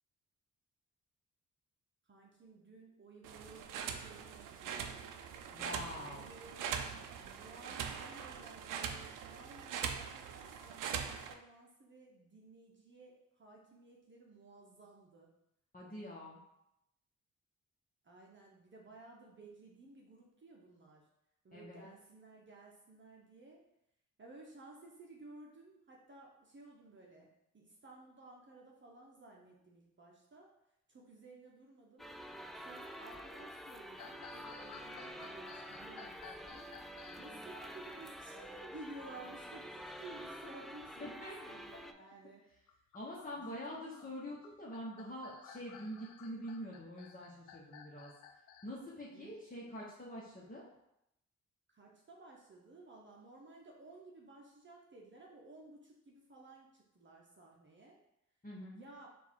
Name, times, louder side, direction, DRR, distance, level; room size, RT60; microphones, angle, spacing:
voice 1, 2.0-4.9 5.9-15.3 18.0-21.1 21.4-23.7 24.2-30.6 30.9-32.1 32.6-36.7 37.2-42.9 43.4-44.1 49.1-49.8 51.7-58.0 58.7-59.1, right 2 dB, 40° right, -2 dB, 0.9 m, -56 dB
sound 1, 3.2-11.3, right 7 dB, 85° right, 0.5 m, -42 dB
voice 2, 5.5-6.3 15.7-16.4 21.5-21.9 41.0-41.6 42.9-48.1 48.6-50.6 58.4-58.8, equal, 25° left, -6 dB, 1.1 m, -45 dB
sound 2, 32.0-41.9, equal, ahead, 0.3 m, -48 dB
sound 3, 34.0-37.3 38.7-39.3 39.7-39.8 40.5-40.9 42.5-48.7, left 7 dB, 85° left, 0.5 m, -56 dB
3.8 x 2.6 x 4.6 m, 0.82 s
supercardioid pair, 55°, 31 cm